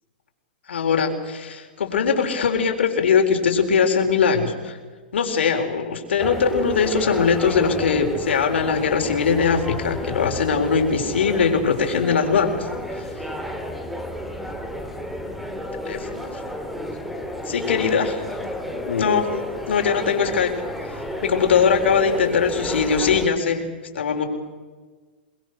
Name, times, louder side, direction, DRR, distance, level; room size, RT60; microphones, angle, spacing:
voice 1, 0.7-4.8 5.1-12.7 13.0-13.1 15.8-16.4 17.4-18.2 18.8-19.3 19.7-20.5 21.2-23.6 23.9-24.2, left 6 dB, 85° left, 4 dB, 4.3 m, -21 dB
sound 1, 6.2-23.3, left 1 dB, ahead, 2.2 m, -31 dB
27.5 x 21.5 x 6.5 m, 1.4 s
hypercardioid pair, 155°, 6 cm